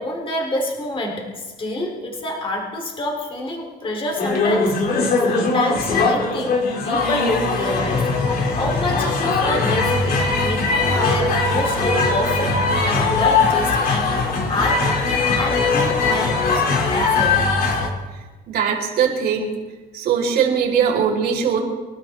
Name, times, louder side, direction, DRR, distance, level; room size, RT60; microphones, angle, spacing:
voice 1, 0.0-4.8 5.3-8.1 8.6-14.9 15.1-17.5, left 1 dB, 30° left, 0 dB, 3.5 m, -27 dB
sound 1, 4.2-17.9, left 3 dB, 60° left, 3.1 m, -20 dB
voice 2, 18.5-19.5 19.9-21.6, right 7 dB, 70° right, -1 dB, 4.8 m, -20 dB
26.5 x 13.0 x 3.7 m, 1.2 s
cardioid pair, 110°, 17 cm